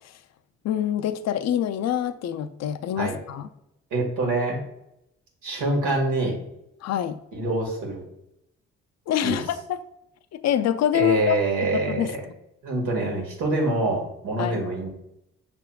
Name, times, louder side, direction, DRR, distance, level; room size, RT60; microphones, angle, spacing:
voice 1, 0.6-3.5 6.8-7.2 9.1-9.8 10.3-11.4 11.7-12.1 14.4-14.6, left 11 dB, 60° left, 10 dB, 0.5 m, -25 dB
voice 2, 3.9-4.6 5.4-6.4 7.3-8.0 9.2-9.4 10.9-12.0 12.6-14.9, right 2 dB, 80° right, 0 dB, 1.6 m, -25 dB
5.7 x 3.5 x 2.3 m, 0.81 s
cardioid pair, 90°, 30 cm